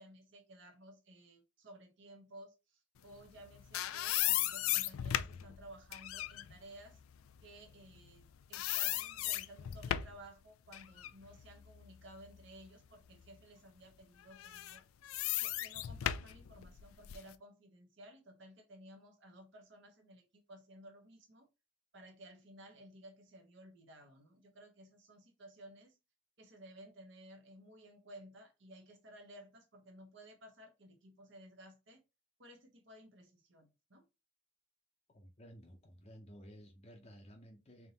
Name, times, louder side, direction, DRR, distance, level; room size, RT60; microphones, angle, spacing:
voice 1, 0.0-7.0 7.4-14.8 15.4-21.5 21.9-26.0 26.4-32.0 32.4-34.0, right 1 dB, 60° right, 0.9 m, -56 dB
sound 1, 3.3-8.2 8.5-10.3 10.7-12.7 13.2-13.3 14.3-17.3, left 13 dB, 85° left, 0.3 m, -37 dB
voice 2, 35.1-37.9, equal, 30° left, 0.6 m, -55 dB
3.5 x 2.8 x 3.9 m
head